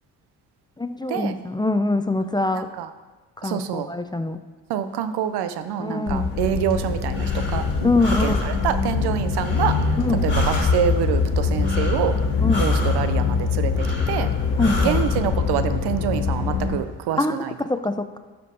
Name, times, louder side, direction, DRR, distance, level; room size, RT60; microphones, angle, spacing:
voice 1, 0.8-2.7 3.4-4.4 5.8-6.3 7.8-8.4 10.0-10.3 12.4-12.7 14.6-15.0 17.2-17.3 17.7-18.2, left 2 dB, 10° left, 9 dB, 0.5 m, -23 dB
voice 2, 2.5-2.9 3.4-3.9 4.7-7.6 8.2-9.8 10.2-12.1 12.6-14.3 14.8-17.5, right 10 dB, 70° right, 11 dB, 0.7 m, -26 dB
sound 1, 6.1-16.8, left 5 dB, 80° left, 1.3 m, -23 dB
Breathing, 6.8-15.2, left 3 dB, 25° left, 2.7 m, -32 dB
12.0 x 4.5 x 4.9 m, 1.2 s
supercardioid pair, 55°, 40 cm